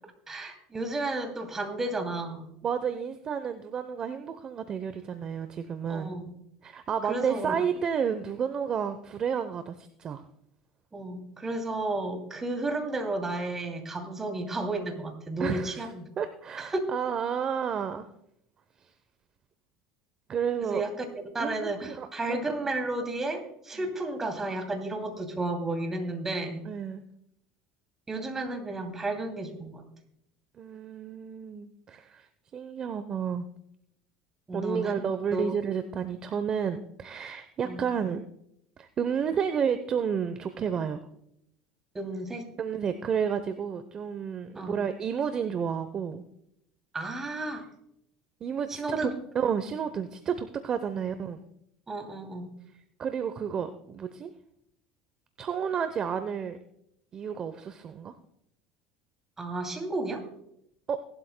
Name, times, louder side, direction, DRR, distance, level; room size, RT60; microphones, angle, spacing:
voice 1, 0.3-2.5 5.9-6.2 7.0-7.5 10.9-16.1 16.6-16.8 20.7-21.0 21.3-26.6 28.1-29.8 34.5-35.1 35.3-35.5 37.6-37.8 41.9-42.5 44.5-44.8 46.9-47.7 48.7-49.1 51.0-51.1 51.9-52.5 59.4-60.2, right 2 dB, 20° right, 5 dB, 2.7 m, -32 dB
voice 2, 2.6-6.1 6.6-10.2 15.4-15.8 16.2-18.1 20.3-20.8 21.4-22.4 26.7-27.0 30.6-32.3 32.5-33.5 34.5-38.3 38.8-41.0 42.6-46.2 48.4-51.4 53.0-54.3 55.4-56.6 57.1-58.1 60.9-61.0, right 7 dB, 35° right, 10 dB, 0.7 m, -31 dB
19.0 x 12.0 x 2.2 m, 0.76 s
supercardioid pair, 105°, 2 cm